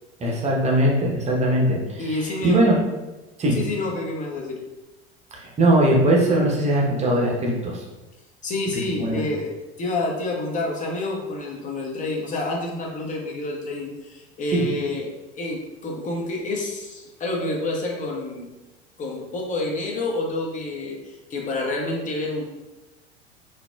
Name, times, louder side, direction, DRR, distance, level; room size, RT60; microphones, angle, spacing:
voice 1, 0.2-2.8 3.4-3.6 5.3-7.8 9.0-9.2 14.5-14.6, right 1 dB, 20° right, -2 dB, 0.8 m, -20 dB
voice 2, 2.0-2.6 3.5-4.6 8.4-18.5 19.0-22.4, left 2 dB, 25° left, 0 dB, 0.7 m, -28 dB
3.9 x 2.7 x 2.2 m, 1.1 s
figure-of-eight pair, 75°, 33 cm